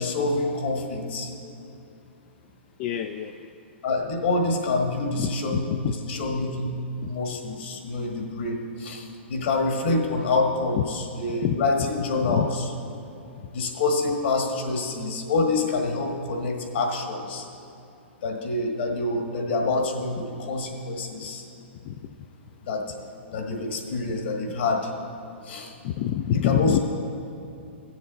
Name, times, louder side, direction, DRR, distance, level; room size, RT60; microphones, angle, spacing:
voice 1, 0.0-1.3 3.8-12.7 13.5-17.4 18.2-21.4 22.6-22.9 23.3-24.9 25.4-25.7 26.3-26.8, left 3 dB, 65° left, 2 dB, 1.5 m, -27 dB
voice 2, 2.8-3.3 5.2-5.9 10.7-10.8 11.4-11.7 12.3-12.5 21.8-22.0 25.8-26.8, left 11 dB, 40° left, 7 dB, 0.3 m, -26 dB
15.5 x 6.9 x 4.0 m, 2.7 s
hypercardioid pair, 120°, 7 cm